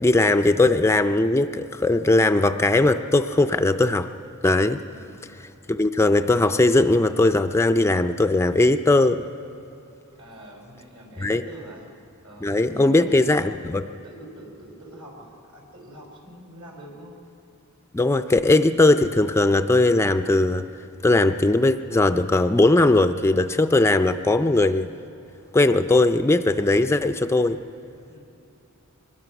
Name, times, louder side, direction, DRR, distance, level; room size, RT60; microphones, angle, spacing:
voice 1, 0.0-4.1 4.4-4.8 5.7-9.2 11.2-11.4 12.4-13.8 17.9-20.6 21.0-24.9 25.5-27.6, left 2 dB, 10° left, 9 dB, 0.4 m, -19 dB
voice 2, 4.8-5.2 10.1-11.8 12.2-13.8 14.0-17.2 28.1-28.2, right 1 dB, 70° right, 1 dB, 4.4 m, -43 dB
24.5 x 20.5 x 6.0 m, 2.6 s
head